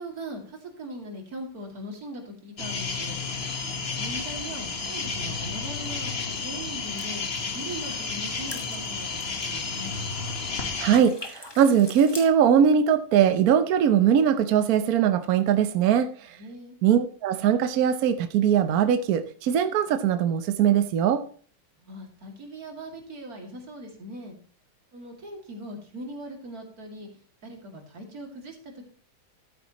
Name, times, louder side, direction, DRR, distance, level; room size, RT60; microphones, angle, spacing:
voice 1, 0.0-3.2 4.0-6.1 6.4-7.2 7.5-9.1 9.5-10.3 16.4-16.7 21.8-24.4 24.9-27.1 27.4-28.9, right 1 dB, 45° right, 2 dB, 2.8 m, -40 dB
sound 1, 2.6-11.0, left 4 dB, 35° left, 1.2 m, -32 dB
sound 2, 6.8-10.6 10.9-12.3, left 2 dB, 20° left, 0.7 m, -44 dB
voice 2, 10.8-16.4 16.8-21.2, right 8 dB, 70° right, 10 dB, 0.9 m, -21 dB
12.5 x 9.0 x 3.0 m, 0.44 s
omnidirectional pair, 2.3 m